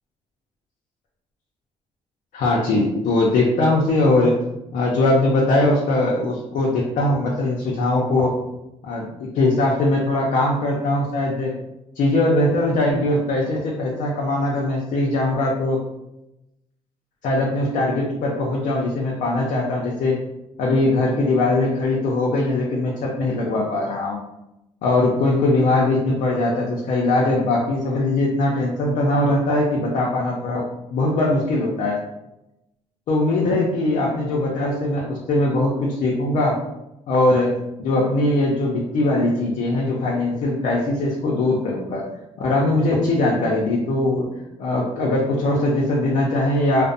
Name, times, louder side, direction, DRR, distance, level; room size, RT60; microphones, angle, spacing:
voice 1, 2.3-4.4 4.7-8.3 8.8-11.5 12.0-15.8 17.2-20.2 20.6-24.2 24.8-30.7 30.9-32.0 33.1-36.6 37.1-37.5 37.8-42.0 42.4-44.3 44.6-46.8, left 2 dB, 70° left, -3 dB, 0.5 m, -21 dB
2.4 x 2.0 x 2.5 m, 0.91 s
cardioid pair, 85°, 13 cm